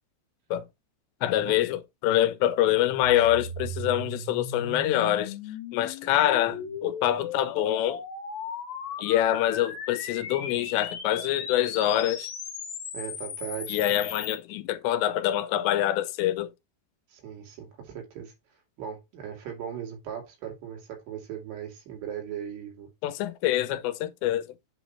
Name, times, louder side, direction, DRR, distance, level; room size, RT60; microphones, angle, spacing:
voice 1, 1.2-5.3 5.7-8.0 9.0-12.3 13.7-16.5 23.0-24.5, left 12 dB, 90° left, 2.9 m, -25 dB
sound 1, 3.0-14.4, left 5 dB, 65° left, 1.8 m, -37 dB
voice 2, 12.9-14.0 17.1-18.3 18.8-22.9, right 9 dB, 75° right, 4.3 m, -38 dB
8.0 x 2.9 x 5.6 m
omnidirectional pair, 4.9 m